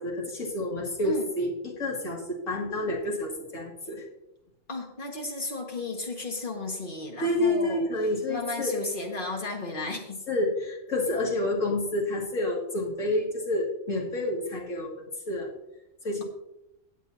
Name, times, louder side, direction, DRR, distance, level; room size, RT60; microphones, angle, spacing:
voice 1, 0.0-4.0 7.2-8.7 10.3-15.5 16.0-16.2, left 1 dB, 75° left, -2 dB, 2.7 m, -29 dB
voice 2, 4.7-7.9 8.3-10.2, left 2 dB, 40° left, 2 dB, 1.9 m, -34 dB
16.5 x 8.3 x 2.8 m, 0.87 s
omnidirectional pair, 1.4 m